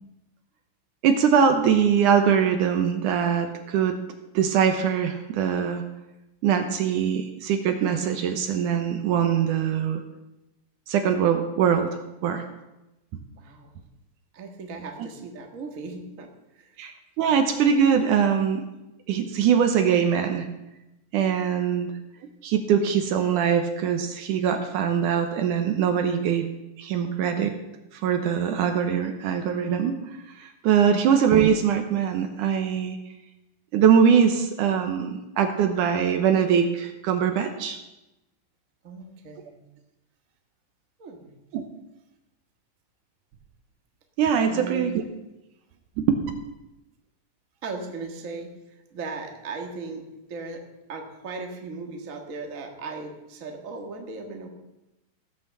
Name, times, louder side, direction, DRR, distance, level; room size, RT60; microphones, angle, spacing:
voice 1, 1.0-4.0 4.3-5.8 6.4-10.0 10.9-12.4 16.8-18.6 19.1-20.5 21.1-21.9 22.4-26.5 26.8-27.5 27.9-30.0 30.4-33.0 33.7-37.8 41.5-41.6 44.2-44.9 46.0-46.2, right 7 dB, 70° right, 6 dB, 2.2 m, -22 dB
voice 2, 13.4-13.7 14.3-16.8 17.2-17.3 38.8-39.5 41.0-41.3 44.5-44.9 47.6-50.6 50.9-54.5, right 3 dB, 45° right, 2 dB, 1.0 m, -37 dB
16.5 x 6.2 x 7.5 m, 0.97 s
omnidirectional pair, 4.2 m